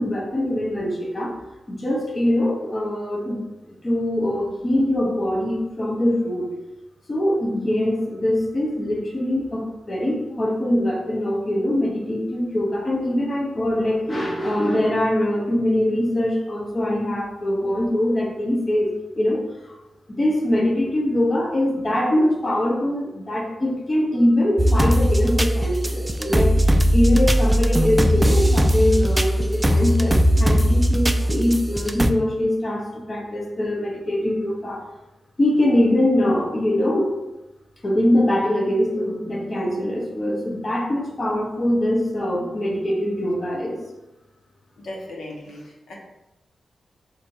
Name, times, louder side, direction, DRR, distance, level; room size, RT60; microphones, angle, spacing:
voice 1, 0.0-1.4 1.7-6.5 7.1-19.8 20.2-34.8 35.4-37.2 37.8-43.8, left 1 dB, 35° left, -1 dB, 0.8 m, -23 dB
sound 1, 24.6-32.1, equal, 15° right, 0.3 m, -19 dB
voice 2, 44.8-45.9, left 1 dB, 90° left, -3 dB, 1.1 m, -36 dB
4.2 x 2.6 x 4.5 m, 0.96 s
wide cardioid pair, 95°, 0 cm